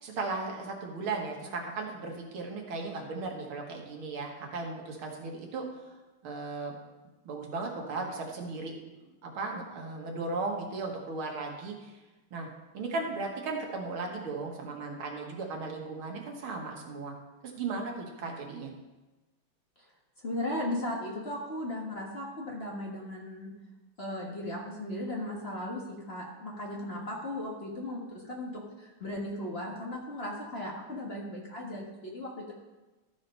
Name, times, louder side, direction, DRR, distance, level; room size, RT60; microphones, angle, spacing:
voice 1, 0.0-5.9 6.2-6.8 7.3-12.0 12.3-12.5 12.7-17.1 17.4-18.7, right 3 dB, 75° right, 1 dB, 2.2 m, -36 dB
voice 2, 20.2-23.5 24.0-32.5, left 1 dB, 30° left, -3 dB, 1.5 m, -36 dB
13.5 x 5.0 x 5.4 m, 1.1 s
omnidirectional pair, 2.3 m